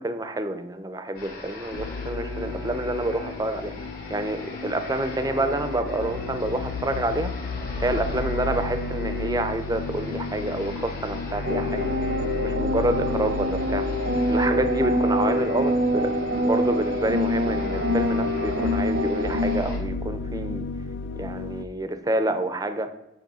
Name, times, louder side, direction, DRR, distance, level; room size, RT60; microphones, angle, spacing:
voice 1, 0.0-3.7 4.1-7.5 7.8-11.9 12.4-13.9 14.3-20.6 21.2-22.9, right 1 dB, 20° right, 9 dB, 0.6 m, -28 dB
sound 1, 1.2-19.8, equal, 55° left, 2.6 m, -39 dB
sound 2, 1.7-21.6, left 4 dB, 70° left, 0.3 m, -33 dB
sound 3, 11.4-19.6, equal, 80° right, 0.9 m, -25 dB
8.7 x 3.2 x 6.1 m, 0.90 s
head